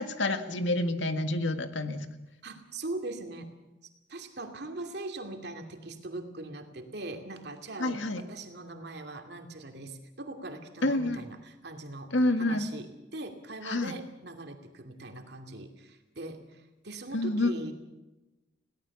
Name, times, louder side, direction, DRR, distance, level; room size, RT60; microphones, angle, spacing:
voice 1, 0.0-2.0 7.8-8.2 10.8-11.2 12.1-12.7 13.6-13.9 17.1-17.5, left 2 dB, 90° left, 8 dB, 1.9 m, -28 dB
voice 2, 2.4-3.5 4.1-17.7, right 2 dB, 60° right, 5 dB, 2.6 m, -41 dB
22.0 x 17.5 x 7.3 m, 1.0 s
head